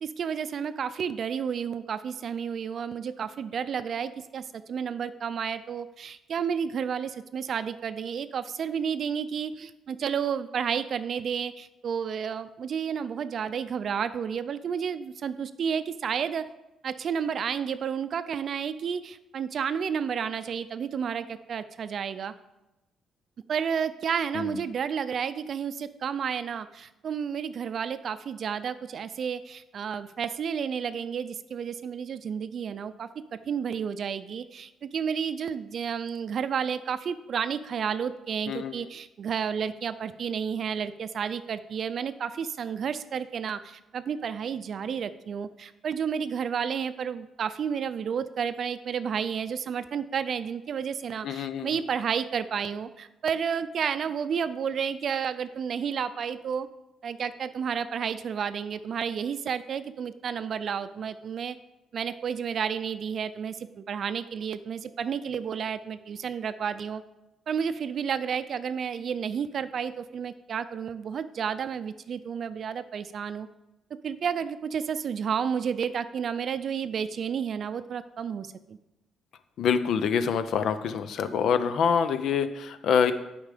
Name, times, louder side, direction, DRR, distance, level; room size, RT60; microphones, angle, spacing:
voice 1, 0.0-16.5 16.8-22.3 23.5-56.7 57.0-61.6 61.9-67.0 67.5-73.5 73.9-78.8, right 7 dB, 55° right, 13 dB, 0.4 m, -31 dB
voice 2, 38.5-38.9 51.2-51.8 79.6-83.1, left 7 dB, 70° left, 11 dB, 0.6 m, -26 dB
8.2 x 5.2 x 5.0 m, 0.95 s
cardioid pair, 90°, 0 cm